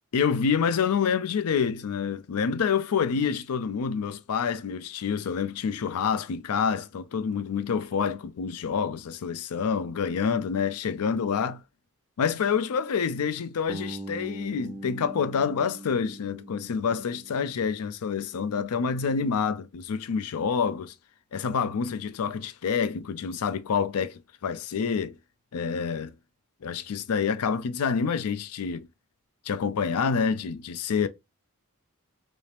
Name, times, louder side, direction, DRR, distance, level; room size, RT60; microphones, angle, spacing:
voice 1, 0.1-11.6 12.2-20.9 21.3-25.1 25.5-26.1 26.6-28.9 29.5-31.1, left 6 dB, 80° left, 0.4 m, -27 dB
Bass guitar, 13.7-17.8, right 1 dB, 15° right, 0.5 m, -41 dB
4.8 x 2.0 x 2.9 m
head